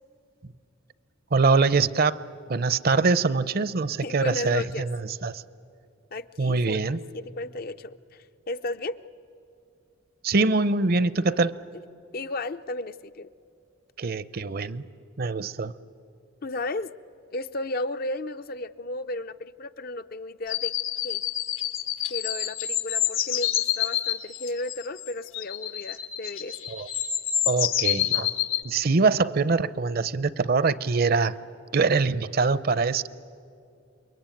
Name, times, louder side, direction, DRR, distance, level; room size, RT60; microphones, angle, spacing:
voice 1, 1.3-2.2 2.5-4.9 5.2-5.4 6.4-7.0 10.2-11.5 14.0-14.8 15.2-15.7 26.7-26.9 27.5-28.3 28.6-31.4 31.7-33.1, right 4 dB, 50° right, 16 dB, 0.6 m, -23 dB
voice 2, 4.0-4.9 6.1-6.8 7.1-9.0 12.1-13.3 16.4-16.9 17.3-20.7 21.0-21.2 22.1-26.6, left 2 dB, 50° left, 11 dB, 0.5 m, -34 dB
sound 1, 20.5-28.6, left 11 dB, 80° left, 1.5 m, -28 dB
28.5 x 22.5 x 9.1 m, 2.5 s
head